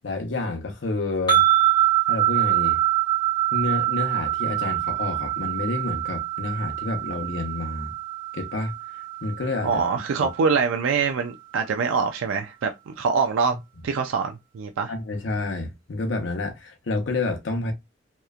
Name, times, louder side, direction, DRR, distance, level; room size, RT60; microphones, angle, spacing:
voice 1, 0.0-1.5 2.1-2.8 3.5-7.9 8.3-8.7 9.2-9.8 10.2-10.3 13.5-13.6 14.9-17.7, left 2 dB, 70° left, 0.7 m, -29 dB
sound 1, 1.3-10.6, right 14 dB, 25° left, 0.9 m, -25 dB
voice 2, 9.6-13.6 13.8-14.9, right 5 dB, 85° right, 0.3 m, -24 dB
2.9 x 2.0 x 2.3 m
head